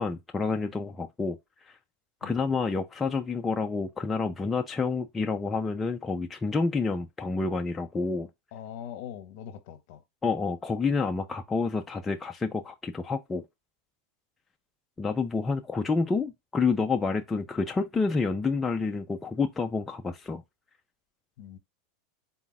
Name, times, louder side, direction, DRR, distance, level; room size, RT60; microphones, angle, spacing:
voice 1, 0.0-1.4 2.2-8.3 10.2-13.4 15.0-20.4, left 4 dB, 10° left, 0.3 m, -28 dB
voice 2, 8.5-10.0 21.4-21.6, left 9 dB, 55° left, 0.8 m, -42 dB
4.1 x 2.3 x 3.9 m
supercardioid pair, 160°, 0 cm